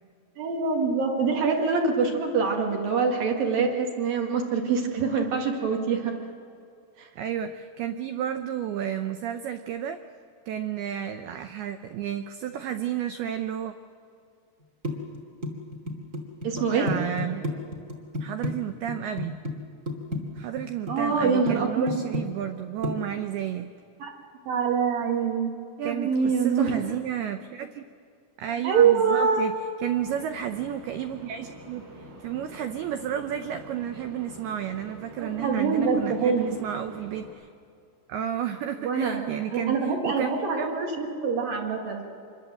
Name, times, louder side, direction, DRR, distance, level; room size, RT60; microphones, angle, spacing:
voice 1, 0.4-6.1 7.0-7.1 16.4-16.9 20.9-22.0 24.0-24.1 24.5-25.5 25.8-26.8 28.6-29.4 35.2-36.6 38.8-39.2 39.5-42.0, right 5 dB, 55° right, 1 dB, 3.2 m, -25 dB
voice 2, 7.2-10.0 10.5-13.7 16.6-17.5 18.2-19.4 20.4-23.7 25.8-27.9 28.4-31.9 32.2-37.5 38.1-40.3 40.6-40.8, right 10 dB, 90° right, 8 dB, 2.2 m, -32 dB
sound 1, 14.8-18.5 18.9-19.5 19.9-20.9 21.2-21.5 21.9-22.6 22.8-22.9, left 1 dB, 30° right, 1.4 m, -30 dB
sound 2, 29.9-37.3, right 1 dB, 70° right, 7.1 m, -46 dB
26.0 x 22.0 x 7.7 m, 2.3 s
omnidirectional pair, 5.5 m